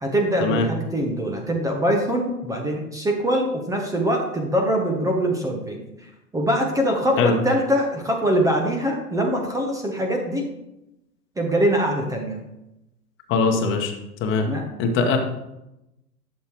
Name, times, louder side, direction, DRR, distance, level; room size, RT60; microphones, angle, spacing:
voice 1, 0.0-5.8 6.3-10.5 11.4-12.4 14.4-14.6 15.0-15.1, equal, 5° right, 1 dB, 1.0 m, -23 dB
voice 2, 13.3-13.9 14.2-14.5 14.8-15.2, left 4 dB, 25° left, 3 dB, 1.4 m, -21 dB
11.5 x 6.8 x 3.1 m, 0.91 s
figure-of-eight pair, 110°, 49 cm